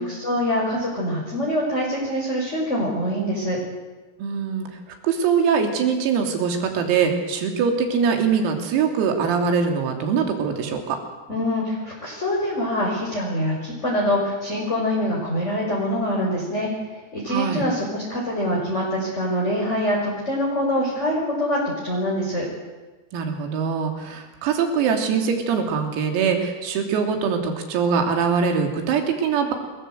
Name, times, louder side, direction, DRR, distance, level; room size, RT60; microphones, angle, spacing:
voice 1, 0.0-3.6 11.3-16.7 17.1-22.5, equal, 15° left, -3 dB, 5.5 m, -24 dB
voice 2, 4.2-4.7 5.0-11.0 17.3-17.6 23.1-29.5, right 6 dB, 85° right, 3 dB, 5.9 m, -22 dB
28.5 x 22.0 x 8.1 m, 1.2 s
omnidirectional pair, 6.0 m